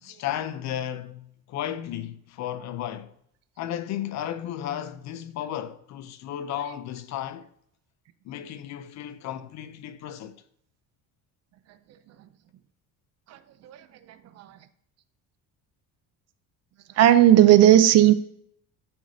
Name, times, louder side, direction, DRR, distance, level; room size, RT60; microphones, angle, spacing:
voice 1, 0.0-3.1 3.6-7.5 8.2-10.4, left 11 dB, 50° left, 0.5 m, -34 dB
voice 2, 17.0-18.1, right 12 dB, 45° right, 0.5 m, -15 dB
12.0 x 6.3 x 2.7 m
cardioid pair, 175°, 37 cm